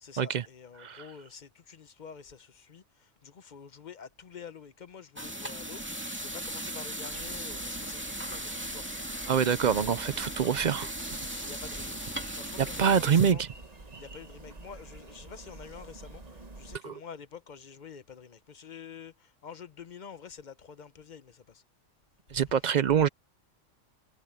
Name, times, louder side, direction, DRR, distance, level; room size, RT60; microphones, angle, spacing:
voice 1, 0.0-5.8 6.1-8.8 9.5-10.5 11.4-13.4 14.0-21.6, left 6 dB, 45° left, 0.8 m, -48 dB
voice 2, 0.8-1.1 9.3-11.0 12.6-13.5 16.8-17.0 22.3-23.1, right 7 dB, 55° right, 0.5 m, -25 dB
sound 1, 5.2-13.3, right 1 dB, 10° right, 2.3 m, -38 dB
sound 2, 7.1-16.8, right 2 dB, 30° right, 1.5 m, -48 dB
omnidirectional pair, 1.3 m